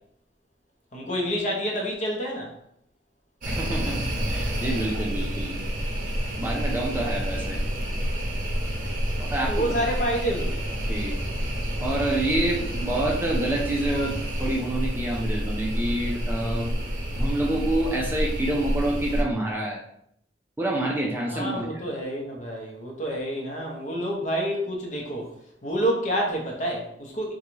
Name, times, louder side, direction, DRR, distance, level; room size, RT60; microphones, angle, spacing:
voice 1, 0.9-2.5 9.5-10.6 21.3-25.3 25.6-27.3, equal, 40° left, 0 dB, 0.7 m, -28 dB
sound 1, 3.4-19.2, equal, 45° right, 0.7 m, -29 dB
voice 2, 3.5-4.0 4.3-5.5 6.4-7.6 9.2-9.9 10.9-11.2 11.8-14.1 14.4-16.7 17.2-19.8 20.6-21.7, right 1 dB, 10° right, -2 dB, 0.4 m, -27 dB
3.8 x 2.3 x 3.0 m, 0.73 s
head